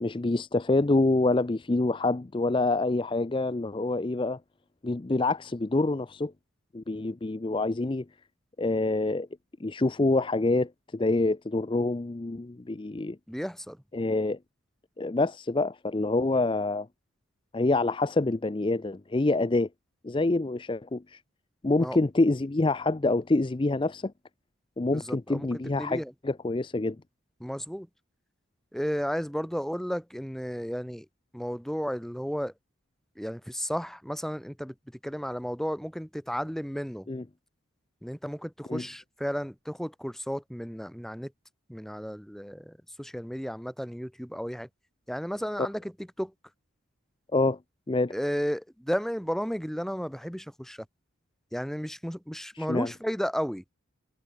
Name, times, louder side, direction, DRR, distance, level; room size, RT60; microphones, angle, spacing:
voice 1, 0.0-4.4 4.8-6.3 6.7-8.0 8.6-9.3 9.6-13.2 13.9-14.4 15.0-16.9 17.5-19.7 20.0-21.2 21.6-24.1 24.8-27.0 37.1-37.2 38.7-38.8 47.3-47.6 47.9-48.1 52.5-52.9, left 2 dB, 25° left, 0.4 m, -26 dB
voice 2, 13.3-13.8 21.8-22.0 24.9-26.1 27.4-27.9 28.7-31.1 31.3-32.5 33.2-34.7 35.0-37.1 38.0-41.3 41.7-44.7 45.1-46.3 48.1-50.9 51.5-53.6, equal, ahead, 3.5 m, -33 dB
head